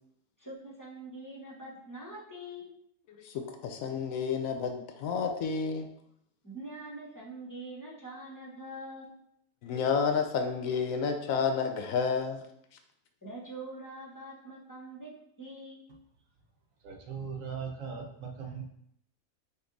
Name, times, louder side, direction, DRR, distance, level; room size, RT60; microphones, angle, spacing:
voice 1, 0.4-2.7 6.4-9.2 13.2-15.1 15.4-15.8, right 1 dB, 15° left, -4 dB, 0.8 m, -44 dB
voice 2, 3.2-5.9 9.6-12.4, left 5 dB, 75° left, 5 dB, 0.9 m, -30 dB
voice 3, 16.8-18.6, right 6 dB, 70° right, 1 dB, 1.1 m, -39 dB
5.3 x 2.6 x 3.9 m, 0.74 s
omnidirectional pair, 1.5 m